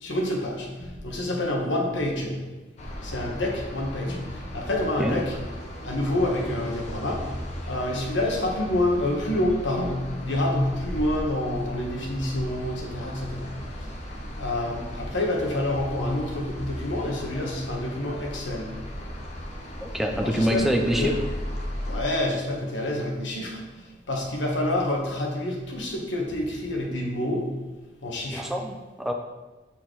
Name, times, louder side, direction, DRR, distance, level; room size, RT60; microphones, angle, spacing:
voice 1, 0.0-2.4 3.0-5.4 5.8-7.3 7.7-13.5 14.4-18.8 20.2-21.2 21.8-23.6 24.1-27.6 28.0-28.5, left 1 dB, 85° left, 0 dB, 1.2 m, -28 dB
sound 1, 2.8-22.0, equal, 35° left, 0.9 m, -36 dB
voice 2, 19.8-21.1 28.3-29.1, equal, ahead, 2 dB, 0.4 m, -25 dB
6.4 x 4.3 x 3.8 m, 1.2 s
head